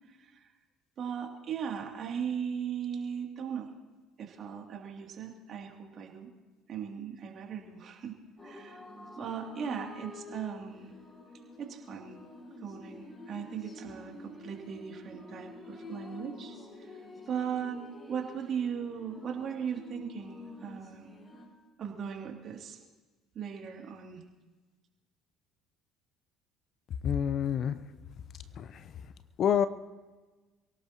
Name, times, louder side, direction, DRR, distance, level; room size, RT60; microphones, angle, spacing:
voice 1, 0.1-0.5 1.0-3.7 4.2-6.3 6.7-8.2 8.4-8.8 9.2-10.9 11.6-12.2 12.6-17.8 18.1-21.1 21.8-22.8 23.3-24.2, right 7 dB, 50° right, 1 dB, 2.7 m, -38 dB
sound 1, 8.4-21.5, left 2 dB, 30° left, 6.3 m, -48 dB
voice 2, 27.0-27.8 28.6-28.9 29.4-29.7, left 8 dB, 50° left, 13 dB, 0.7 m, -27 dB
28.0 x 17.5 x 3.0 m, 1.3 s
hypercardioid pair, 60°, 0 cm